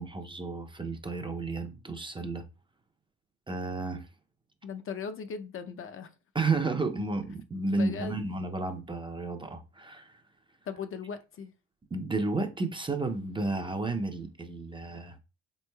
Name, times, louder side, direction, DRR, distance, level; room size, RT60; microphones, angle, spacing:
voice 1, 0.0-2.4 3.5-4.1 6.3-10.2 11.9-15.2, right 3 dB, 15° right, 0.4 m, -32 dB
voice 2, 4.6-6.1 7.7-8.2 10.7-11.5, left 6 dB, 45° left, 0.5 m, -38 dB
3.6 x 3.0 x 2.2 m
cardioid pair, 90°, 30 cm